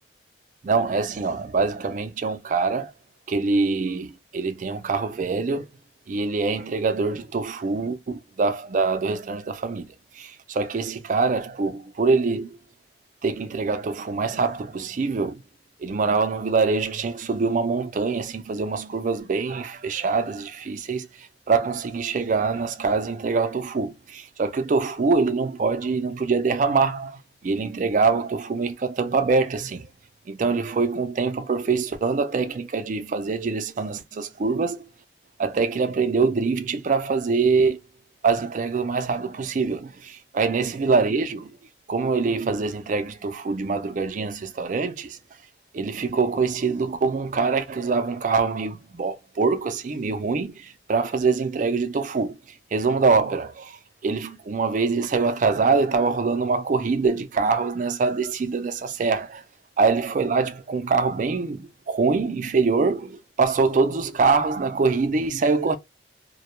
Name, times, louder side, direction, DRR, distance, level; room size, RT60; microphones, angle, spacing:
voice 1, 0.6-2.9 3.3-5.7 6.1-12.6 13.2-15.4 15.8-29.9 30.3-34.9 35.4-37.8 38.2-41.6 41.9-45.2 45.7-59.4 59.8-65.8, right 4 dB, 40° right, 0.4 m, -24 dB
2.2 x 2.1 x 2.9 m
head